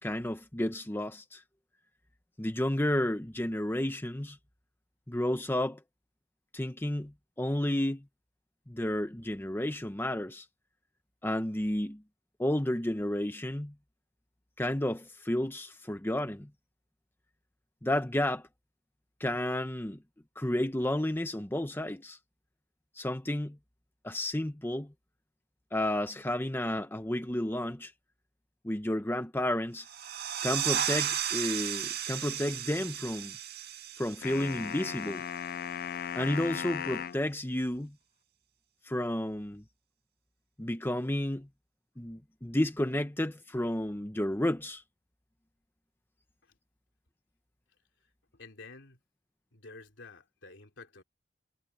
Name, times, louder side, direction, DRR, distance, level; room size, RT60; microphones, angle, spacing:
voice 1, 0.0-1.4 2.4-4.4 5.1-5.8 6.5-8.0 8.7-10.5 11.2-12.0 12.4-13.7 14.6-16.5 17.8-18.5 19.2-20.0 20.4-22.2 22.9-23.6 24.0-24.9 25.7-27.9 28.6-29.9 30.4-33.4 34.0-35.2 36.1-37.9 38.8-39.6 40.6-41.5 42.0-44.8, left 1 dB, 10° left, 1.0 m, -31 dB
sound 1, 29.8-35.2, right 10 dB, 55° right, 1.7 m, -34 dB
sound 2, 34.2-37.2, left 8 dB, 50° left, 0.4 m, -37 dB
voice 2, 48.3-49.0 49.5-51.0, left 3 dB, 70° left, 3.6 m, -50 dB
head